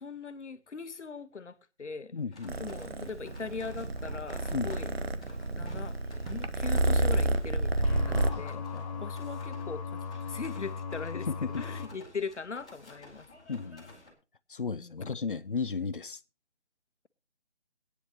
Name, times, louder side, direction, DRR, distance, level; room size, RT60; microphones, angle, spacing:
voice 1, 0.0-2.1 2.6-4.9 5.6-6.0 6.3-8.6 9.0-13.3 14.7-15.1, left 4 dB, 90° left, 1.3 m, -40 dB
voice 2, 2.1-2.6 4.5-4.8 8.1-9.0 11.1-11.6 13.5-13.9 14.5-16.2, left 5 dB, 50° left, 0.7 m, -35 dB
sound 1, 2.3-14.1, left 2 dB, 5° left, 1.0 m, -55 dB
Purr, 2.5-8.3, right 2 dB, 60° right, 1.1 m, -30 dB
sound 2, 7.8-11.9, left 5 dB, 30° left, 3.7 m, -38 dB
18.5 x 10.0 x 2.9 m
figure-of-eight pair, 175°, 34 cm